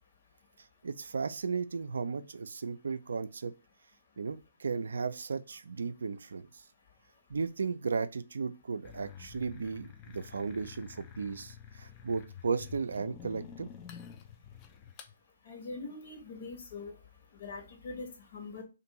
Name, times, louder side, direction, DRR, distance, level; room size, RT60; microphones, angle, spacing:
voice 1, 0.8-3.5 4.2-6.5 7.3-13.7, right 5 dB, 70° right, 0.3 m, -35 dB
sound 1, 8.8-15.1, left 8 dB, 25° left, 0.3 m, -49 dB
voice 2, 15.5-16.9 17.4-18.6, left 3 dB, 50° left, 1.1 m, -42 dB
2.5 x 2.5 x 2.9 m
hypercardioid pair, 140°, 0 cm